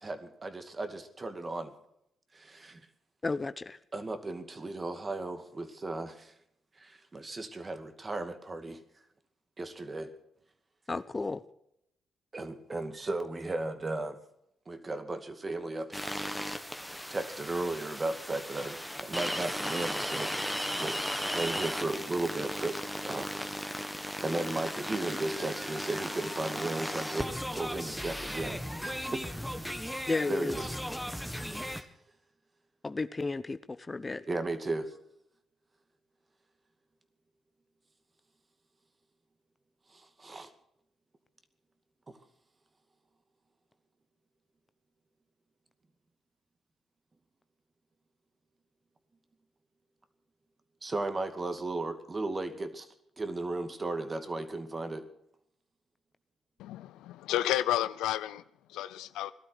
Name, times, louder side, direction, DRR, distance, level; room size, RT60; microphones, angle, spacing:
voice 1, 0.0-1.7 2.3-2.9 3.9-6.3 6.8-8.8 9.6-10.1 12.3-14.2 14.7-16.2 17.1-22.8 23.1-23.3 24.2-29.2 30.3-30.8 31.7-31.9 34.3-35.0 39.9-40.5 50.8-55.1, right 2 dB, 35° right, 2.3 m, -35 dB
voice 2, 3.2-3.8 10.9-11.4 30.1-30.6 32.8-34.2, left 3 dB, 30° left, 0.9 m, -33 dB
sound 1, 15.9-31.8, equal, ahead, 1.7 m, -36 dB
voice 3, 56.6-58.4 58.7-59.3, left 13 dB, 80° left, 0.6 m, -31 dB
18.5 x 12.5 x 6.2 m
hypercardioid pair, 50°, 0 cm